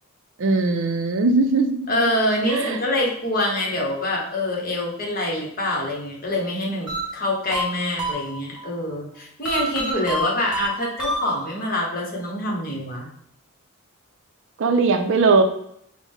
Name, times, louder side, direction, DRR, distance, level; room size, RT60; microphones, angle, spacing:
voice 1, 0.4-1.9 2.5-2.8 14.6-15.4, right 3 dB, 60° right, 6 dB, 0.4 m, -19 dB
voice 2, 1.9-13.1, left 1 dB, 40° left, -1 dB, 1.0 m, -25 dB
sound 1, 6.9-8.7 9.4-11.7, right 1 dB, 5° right, 0.9 m, -29 dB
4.7 x 2.1 x 3.6 m, 0.71 s
head